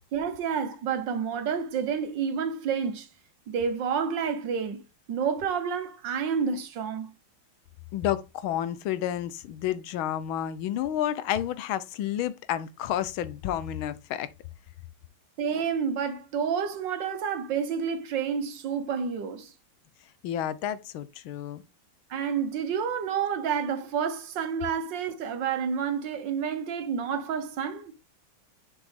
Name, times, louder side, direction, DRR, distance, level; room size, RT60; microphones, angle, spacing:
voice 1, 0.1-3.1 3.5-4.8 5.1-7.1 15.4-19.5 22.1-27.9, right 6 dB, 65° right, 1.6 m, -29 dB
voice 2, 7.9-14.3 20.2-21.6, left 11 dB, 80° left, 1.5 m, -30 dB
6.7 x 5.2 x 3.5 m
omnidirectional pair, 2.2 m